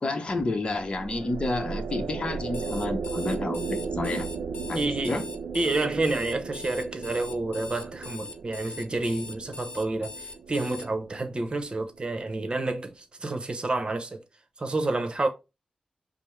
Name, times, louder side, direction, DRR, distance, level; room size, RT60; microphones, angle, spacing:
voice 1, 0.0-3.6 3.9-4.3 4.7-4.8 5.1-5.2, left 2 dB, 40° left, 0.8 m, -29 dB
sound 1, 0.6-12.0, right 5 dB, 90° right, 0.4 m, -36 dB
Alarm, 2.4-10.9, left 4 dB, 75° left, 0.5 m, -42 dB
voice 2, 4.8-5.2 5.5-14.2 14.6-15.3, right 2 dB, 40° right, 0.8 m, -29 dB
5.2 x 2.0 x 3.2 m
wide cardioid pair, 75°, 2 cm